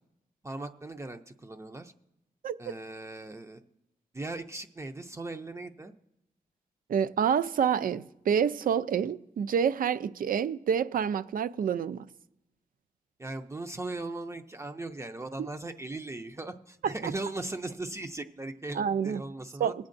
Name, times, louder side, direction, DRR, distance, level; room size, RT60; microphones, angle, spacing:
voice 1, 0.4-1.9 2.6-3.6 4.1-5.9 13.2-19.7, right 2 dB, 20° right, 0.5 m, -38 dB
voice 2, 6.9-12.1 17.0-17.1 18.7-19.2 19.6-19.7, right 7 dB, 75° right, 0.5 m, -27 dB
21.0 x 8.4 x 2.6 m
wide cardioid pair, 150°, 15 cm